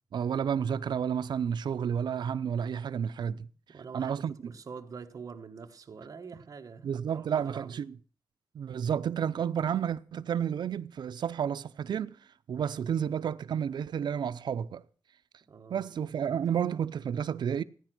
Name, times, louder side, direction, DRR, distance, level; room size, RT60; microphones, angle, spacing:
voice 1, 0.1-3.5 3.9-4.5 6.8-7.9 8.5-12.2 12.5-14.9 15.7-17.6, right 8 dB, 80° right, 0.6 m, -31 dB
voice 2, 3.7-7.8 15.5-15.9, right 5 dB, 50° right, 1.2 m, -45 dB
15.5 x 10.0 x 6.0 m
wide cardioid pair, 175°, 7 cm